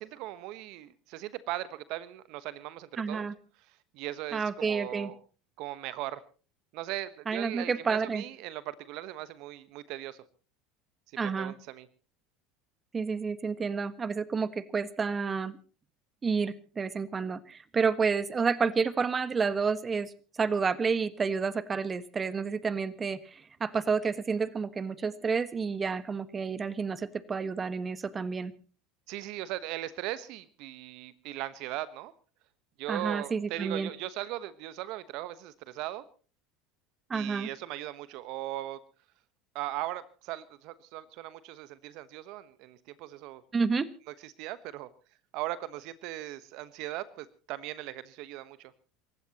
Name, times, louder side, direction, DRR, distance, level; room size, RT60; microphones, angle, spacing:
voice 1, 0.0-3.3 3.9-5.2 5.6-6.2 6.7-10.2 11.1-11.9 29.1-32.1 32.8-36.0 37.1-38.8 39.5-43.4 44.2-44.9 45.3-48.7, right 15 dB, 60° right, 15 dB, 1.1 m, -38 dB
voice 2, 3.0-3.3 4.3-5.1 7.3-8.2 11.2-11.5 12.9-15.6 16.2-28.5 32.9-33.9 37.1-37.5 43.5-43.9, right 5 dB, 25° right, 15 dB, 1.4 m, -30 dB
28.0 x 15.5 x 2.9 m, 0.37 s
hypercardioid pair, 80°, 0 cm